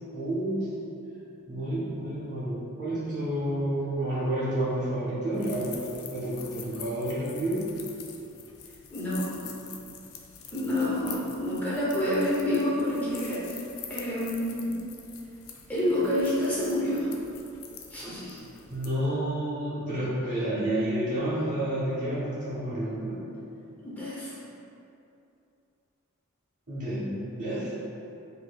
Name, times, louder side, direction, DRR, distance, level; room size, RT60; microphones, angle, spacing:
voice 1, 0.1-0.8 1.5-7.7 18.7-23.2 26.7-27.7, right 1 dB, 35° right, -11 dB, 0.8 m, -30 dB
sound 1, 5.3-18.9, left 7 dB, 80° left, 0.4 m, -46 dB
voice 2, 8.9-9.3 10.5-13.4 13.9-14.7 15.7-17.1 17.9-18.4 23.8-24.4, left 1 dB, 10° left, -9 dB, 0.6 m, -28 dB
4.3 x 2.7 x 2.3 m, 2.7 s
head